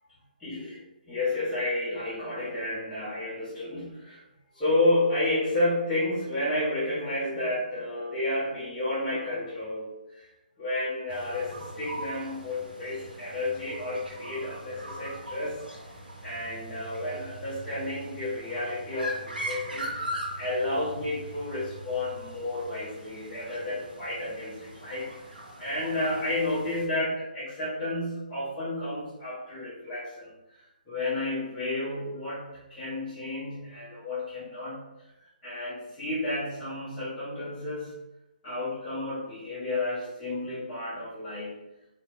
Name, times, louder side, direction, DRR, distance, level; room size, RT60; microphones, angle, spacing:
voice 1, 0.4-0.8 1.1-4.2 4.5-10.3 10.6-15.6 16.2-19.9 20.4-34.8 35.4-38.0 38.4-41.6, left 2 dB, 15° left, -12 dB, 0.7 m, -31 dB
sound 1, 11.1-26.9, right 1 dB, 70° right, 0.6 m, -41 dB
2.9 x 2.0 x 2.3 m, 0.93 s
figure-of-eight pair, 135°, 5 cm